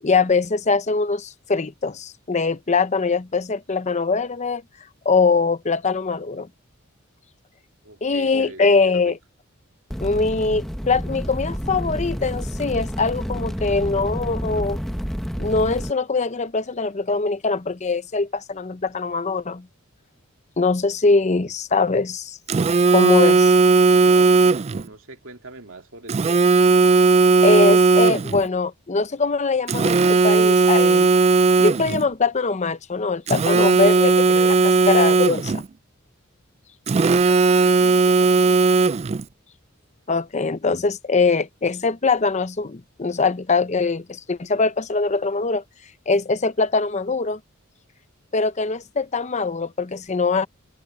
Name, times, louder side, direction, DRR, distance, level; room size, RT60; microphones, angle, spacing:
voice 1, 0.0-4.6 5.0-6.5 8.0-9.2 10.0-14.8 15.4-19.7 20.6-22.4 22.9-23.5 27.4-31.1 31.6-35.6 40.1-45.6 46.1-47.4 48.3-50.5, left 4 dB, 35° left, 0.7 m, -22 dB
voice 2, 7.8-9.2 24.0-26.6, right 2 dB, 70° right, 2.4 m, -42 dB
sound 1, 9.9-15.9, equal, ahead, 1.0 m, -29 dB
Telephone, 22.5-24.8 26.1-28.5 29.7-32.0 33.3-35.7 36.9-39.2, right 4 dB, 30° right, 0.3 m, -16 dB
head